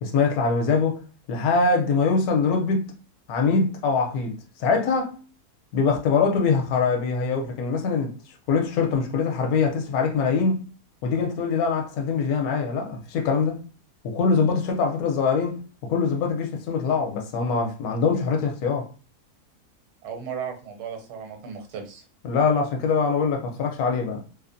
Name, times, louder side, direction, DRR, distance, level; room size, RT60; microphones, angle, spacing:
voice 1, 0.0-1.0 1.3-2.9 3.3-5.1 5.7-8.2 8.5-10.6 11.0-13.6 14.0-18.9 22.2-24.2, left 5 dB, 75° left, 1.0 m, -23 dB
voice 2, 20.0-22.0, right 7 dB, 80° right, 1.1 m, -35 dB
2.7 x 2.0 x 2.5 m
omnidirectional pair, 1.6 m